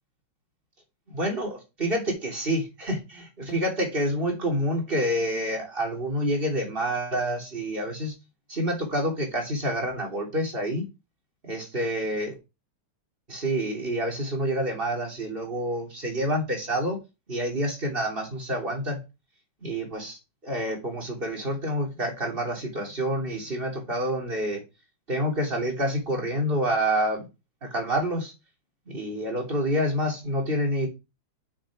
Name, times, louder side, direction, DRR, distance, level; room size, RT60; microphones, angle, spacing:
voice 1, 1.1-8.1 8.5-10.8 11.4-12.3 13.3-17.0 17.3-19.0 19.6-24.6 25.1-27.2 27.6-28.3 28.9-30.9, equal, 25° right, 3.2 m, -28 dB
7.1 x 6.7 x 4.9 m
omnidirectional pair, 2.4 m